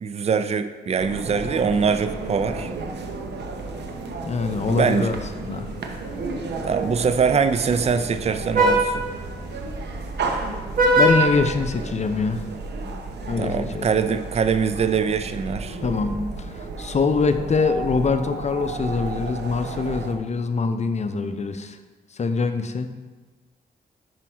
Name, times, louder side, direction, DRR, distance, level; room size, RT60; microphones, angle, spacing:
voice 1, 0.0-2.7 4.7-5.1 6.6-9.0 13.4-15.8, right 6 dB, 40° right, 11 dB, 0.4 m, -23 dB
sound 1, 1.0-20.1, right 3 dB, 80° right, 0.7 m, -33 dB
voice 2, 4.2-5.7 10.2-10.3 11.0-12.4 13.3-13.9 15.8-21.8 22.1-22.9, left 4 dB, 40° left, 8 dB, 0.6 m, -24 dB
Vehicle horn car horn honking, 4.2-12.4, right 1 dB, 55° right, 1.1 m, -26 dB
6.0 x 4.7 x 4.5 m, 1.3 s
cardioid pair, 60°, 17 cm